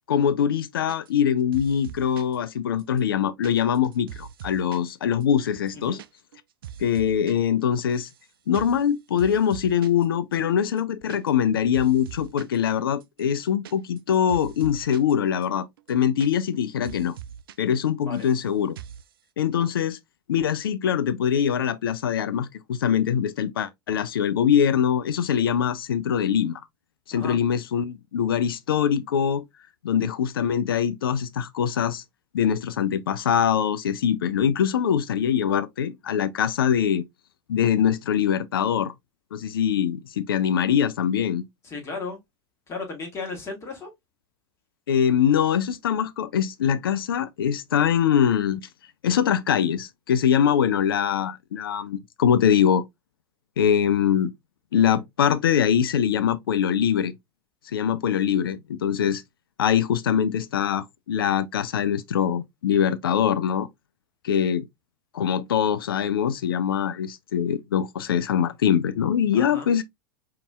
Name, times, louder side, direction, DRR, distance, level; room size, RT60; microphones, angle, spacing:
voice 1, 0.1-6.0 6.8-8.1 8.5-17.1 17.6-18.8 19.4-20.0 20.3-26.6 27.1-29.4 29.8-32.0 32.3-37.0 37.5-38.9 39.3-41.4 44.9-48.7 49.0-52.8 53.6-54.3 54.7-57.1 57.7-59.2 59.6-63.7 64.2-64.7 65.1-69.8, left 8 dB, 65° left, 0.4 m, -23 dB
sound 1, 0.9-1.3 1.5-2.4 2.8-4.9 5.2-5.3 5.6-6.1 6.3-7.3 7.6-8.2 8.5-8.9 9.2-10.1 10.3-10.4 10.7-11.5 11.7-12.6 13.0-15.1 15.4-15.5 15.8-16.6 16.8-17.6 17.8-18.4 18.8-19.1, right 10 dB, 65° right, 0.4 m, -42 dB
voice 2, 41.6-42.2 42.7-43.9 69.3-69.7, left 4 dB, 20° left, 1.6 m, -35 dB
5.2 x 2.8 x 2.3 m
figure-of-eight pair, 85°, 13 cm